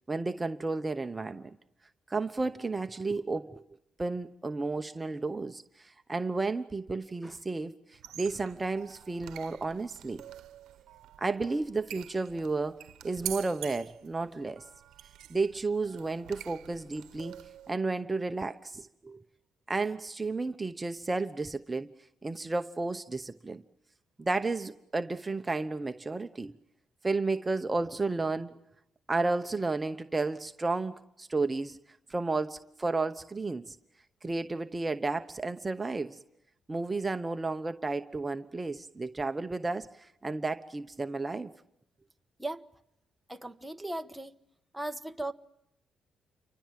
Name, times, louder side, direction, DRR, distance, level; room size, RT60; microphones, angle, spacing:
voice 1, 0.1-1.5 2.1-3.6 4.0-10.2 11.2-14.7 15.3-17.3 17.7-19.2 19.7-21.9 22.2-23.6 24.2-26.5 27.0-28.5 29.1-31.8 32.1-33.8 34.2-36.2 36.7-41.5, right 3 dB, 20° right, 1.0 m, -32 dB
sound 1, 7.9-17.8, right 12 dB, 80° right, 1.0 m, -46 dB
voice 2, 43.3-44.4 44.7-45.3, right 1 dB, 5° right, 1.2 m, -37 dB
29.5 x 24.5 x 7.6 m
cardioid pair, 90°, 0 cm